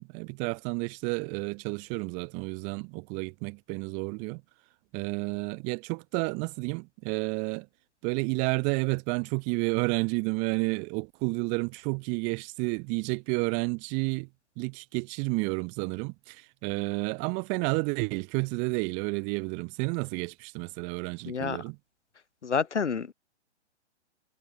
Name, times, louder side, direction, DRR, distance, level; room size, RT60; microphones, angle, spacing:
voice 1, 0.0-4.4 4.9-7.7 8.0-14.3 14.6-21.8, right 35 dB, 20° right, 0.7 m, -31 dB
voice 2, 21.3-21.6 22.4-23.1, left 6 dB, 90° left, 0.6 m, -29 dB
figure-of-eight pair, 115°, 34 cm